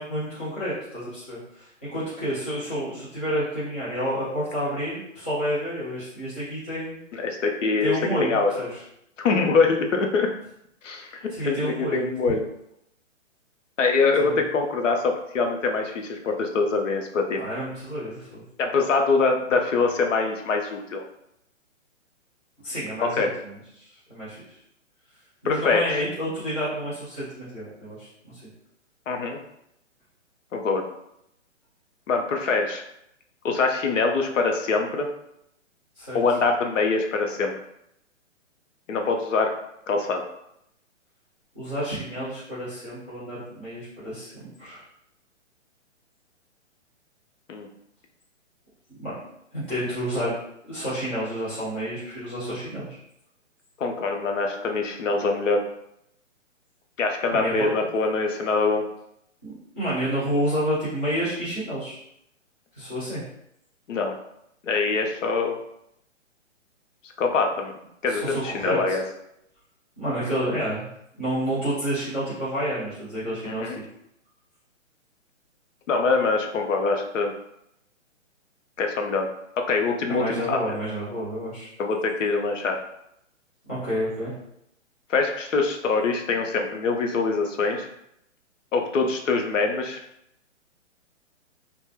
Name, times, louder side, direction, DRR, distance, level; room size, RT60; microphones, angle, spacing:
voice 1, 0.0-7.0 7.8-8.8 11.3-12.1 14.2-14.3 17.3-18.4 22.6-24.4 25.4-28.4 36.0-36.2 41.5-44.8 49.0-49.2 49.5-50.3 50.7-53.0 57.3-57.7 59.4-62.0 62.8-63.2 68.1-69.0 70.0-70.9 71.2-73.7 80.1-81.7 83.7-84.4, equal, 10° left, -14 dB, 0.3 m, -29 dB
voice 2, 7.1-7.9 8.2-8.5 9.2-10.3 10.8-12.5 13.8-17.5 18.6-21.0 23.0-23.3 25.4-26.0 29.1-29.4 30.5-30.8 32.1-32.8 33.4-35.1 36.1-37.5 38.9-39.5 39.9-40.2 47.5-47.7 53.8-55.6 57.0-58.8 63.9-64.1 64.6-65.6 67.2-67.7 68.0-69.0 73.5-73.8 75.9-77.3 78.8-79.3 79.7-80.8 81.8-82.8 85.1-87.9 88.7-90.0, left 4 dB, 75° left, 3 dB, 0.6 m, -24 dB
2.1 x 2.0 x 3.0 m, 0.78 s
hypercardioid pair, 140°, 38 cm